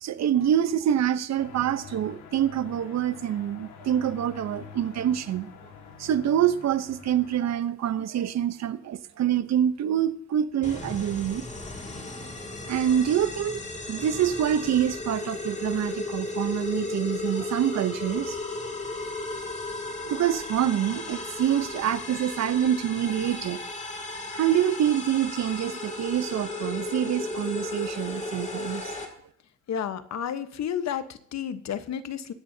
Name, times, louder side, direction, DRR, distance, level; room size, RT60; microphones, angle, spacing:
voice 1, 0.0-5.5 6.0-11.4 12.7-13.6 13.9-18.4 20.1-23.6 24.3-29.0, right 10 dB, 60° right, 0.9 m, -26 dB
sound 1, 1.4-7.5, left 6 dB, 85° left, 2.0 m, -46 dB
sound 2, 10.6-29.1, left 2 dB, 25° left, 2.7 m, -35 dB
voice 2, 29.7-32.3, left 8 dB, 60° left, 1.2 m, -31 dB
22.5 x 10.0 x 2.8 m
cardioid pair, 90°, 30 cm